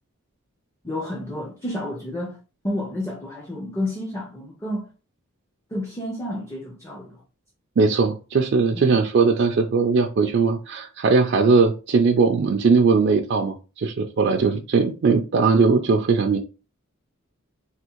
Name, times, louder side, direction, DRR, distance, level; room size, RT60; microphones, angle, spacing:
voice 1, 0.8-2.4 2.6-4.9 5.7-7.2 8.8-9.1, left 1 dB, 10° left, 0.5 m, -30 dB
voice 2, 7.8-16.4, right 4 dB, 55° right, 0.4 m, -19 dB
3.5 x 2.4 x 2.9 m
head